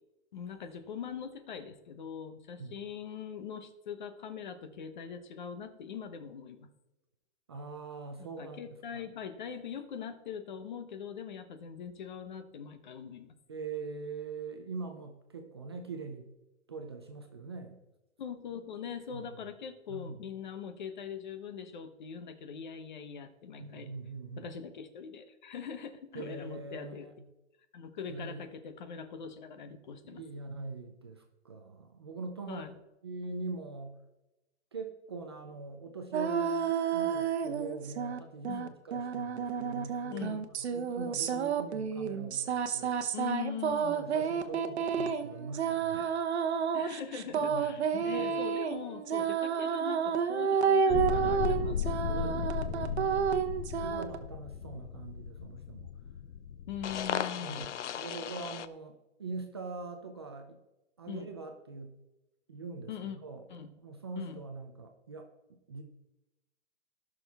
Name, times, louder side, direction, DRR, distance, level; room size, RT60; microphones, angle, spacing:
voice 1, 0.3-6.7 8.2-13.3 18.2-23.9 24.4-27.1 27.7-30.2 32.5-32.8 38.5-38.7 40.1-40.4 43.1-43.9 46.7-52.5 56.7-57.7 61.1-61.3 62.9-63.2 63.5-63.7 64.1-64.4, left 7 dB, 45° left, 10 dB, 1.0 m, -42 dB
voice 2, 7.5-8.6 8.9-9.0 13.5-16.3 16.7-17.8 19.1-19.4 19.9-20.2 23.6-24.5 26.1-27.3 28.1-28.4 30.0-32.6 33.0-34.0 34.7-40.3 40.6-43.0 43.8-46.7 47.2-47.7 48.0-48.4 52.2-53.3 53.8-55.9 57.3-60.6 61.0-61.9 62.5-62.9 63.2-63.5 63.8-65.8, right 4 dB, 25° right, 4 dB, 0.4 m, -43 dB
sound 1, 36.1-38.2 38.4-54.2, right 7 dB, 70° right, 1.0 m, -30 dB
sound 2, 50.9-58.7, left 8 dB, 90° left, 0.7 m, -36 dB
17.0 x 6.2 x 3.5 m, 0.99 s
hypercardioid pair, 180°, 34 cm